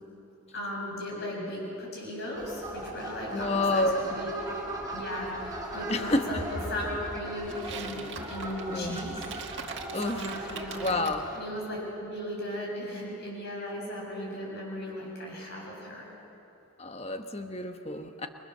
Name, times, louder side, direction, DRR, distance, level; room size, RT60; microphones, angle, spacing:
voice 1, 0.5-4.3 4.9-9.2 9.8-10.9 11.3-16.1, left 1 dB, 45° left, -2 dB, 7.6 m, -36 dB
sound 1, 2.3-11.4, right 1 dB, 15° right, 5.2 m, -39 dB
voice 2, 3.3-4.2 5.9-6.3 8.7-9.0 9.9-10.3 10.8-11.2 16.8-18.3, left 2 dB, 30° left, 6 dB, 1.2 m, -29 dB
sound 2, 7.5-11.2, right 6 dB, 55° right, 2.0 m, -42 dB
29.5 x 23.0 x 6.8 m, 2.9 s
head